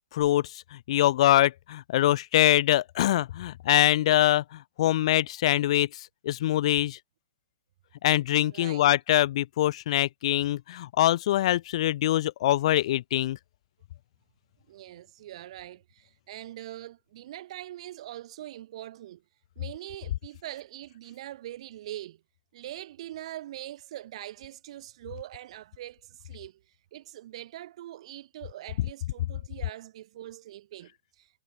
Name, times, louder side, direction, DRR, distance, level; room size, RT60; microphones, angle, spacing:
voice 1, 0.1-7.0 8.0-13.4, left 13 dB, 55° left, 0.4 m, -24 dB
voice 2, 8.4-8.9 14.7-19.2 19.5-22.2 22.5-26.6 26.9-31.4, right 13 dB, 55° right, 6.8 m, -43 dB
hypercardioid pair, 145°, 4 cm